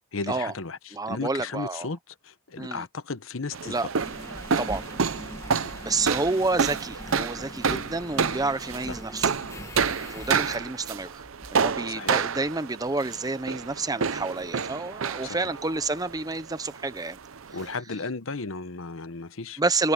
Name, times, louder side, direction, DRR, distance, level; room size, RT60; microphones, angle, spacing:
voice 1, 0.1-3.8 5.5-5.7 7.7-7.8 11.9-12.2 15.2-15.5 17.5-19.6, left 3 dB, 75° left, 1.0 m, -35 dB
voice 2, 0.9-1.9 2.6-2.8 3.6-3.9 4.6-4.9 5.8-9.3 10.1-11.2 11.5-17.2 19.6-19.9, right 3 dB, 20° right, 0.8 m, -29 dB
sound 1, 3.5-17.8, right 6 dB, 80° right, 0.7 m, -29 dB
Engine, 4.0-11.8 12.4-12.5, left 1 dB, 15° left, 1.5 m, -42 dB
head